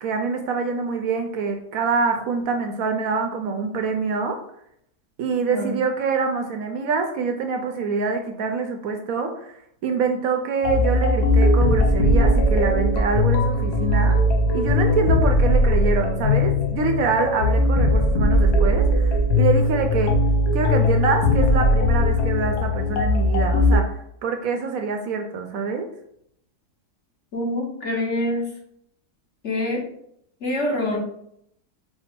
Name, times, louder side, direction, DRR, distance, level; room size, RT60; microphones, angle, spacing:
voice 1, 0.0-4.4 5.2-9.5 9.8-14.2 14.5-20.2 20.5-25.9, right 4 dB, 70° right, 5 dB, 0.9 m, -25 dB
sound 1, 10.6-23.8, left 1 dB, 85° left, 1.4 m, -19 dB
voice 2, 27.3-28.4 29.4-29.8 30.4-31.0, left 1 dB, 50° left, -1 dB, 1.2 m, -25 dB
4.5 x 2.1 x 4.3 m, 0.71 s
omnidirectional pair, 1.7 m